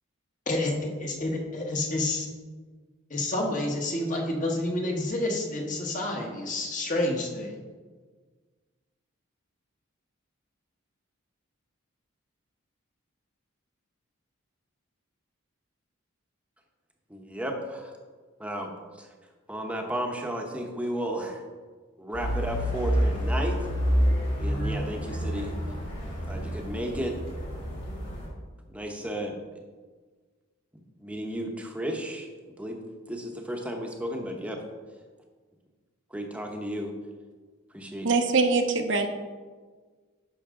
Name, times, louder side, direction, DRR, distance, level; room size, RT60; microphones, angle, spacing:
voice 1, 0.5-2.3 3.1-7.6, left 1 dB, 35° left, 0 dB, 1.3 m, -29 dB
voice 2, 17.1-17.9 18.4-18.7 19.0-19.1 19.5-21.4 22.0-23.6 24.4-25.5 26.3-27.2 28.7-29.4 31.0-32.3 32.6-32.8 33.1-34.6 36.1-36.9 37.7-38.1, equal, 5° right, 2 dB, 0.9 m, -33 dB
sound 1, 22.1-28.3, equal, 60° left, 3.0 m, -28 dB
voice 3, 38.0-39.1, right 3 dB, 60° right, 5 dB, 0.8 m, -23 dB
10.5 x 6.5 x 3.7 m, 1.4 s
head